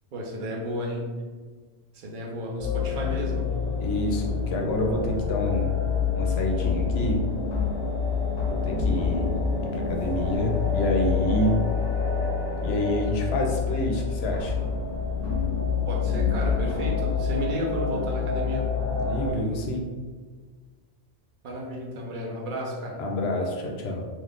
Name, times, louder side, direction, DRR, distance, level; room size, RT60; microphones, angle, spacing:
voice 1, 0.1-1.1 1.9-3.6 15.9-18.7 21.4-23.0, equal, 55° right, -1 dB, 0.7 m, -32 dB
sound 1, 2.6-19.3, left 5 dB, 45° left, 0.7 m, -27 dB
voice 2, 3.8-5.7 6.2-7.3 8.6-9.4 9.6-11.6 12.6-14.6 19.0-19.8 23.0-24.0, left 1 dB, 75° left, 1 dB, 0.8 m, -28 dB
2.6 x 2.4 x 3.4 m, 1.5 s
omnidirectional pair, 1.1 m